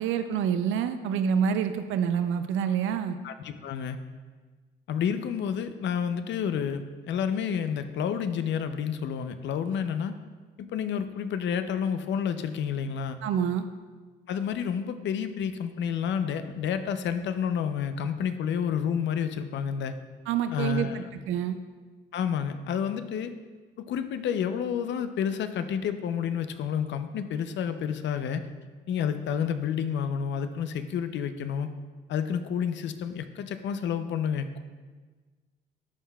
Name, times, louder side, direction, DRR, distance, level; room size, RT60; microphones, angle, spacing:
voice 1, 0.0-3.2 13.2-13.7 20.3-21.6, right 8 dB, 85° right, 9 dB, 0.4 m, -27 dB
voice 2, 3.2-4.0 4.9-10.1 10.6-13.2 14.3-19.9 20.5-21.0 22.1-23.3 23.8-28.5 28.9-31.7 32.1-34.6, left 7 dB, 65° left, 10 dB, 0.5 m, -30 dB
11.5 x 4.6 x 2.2 m, 1.4 s
cardioid pair, 90°, 20 cm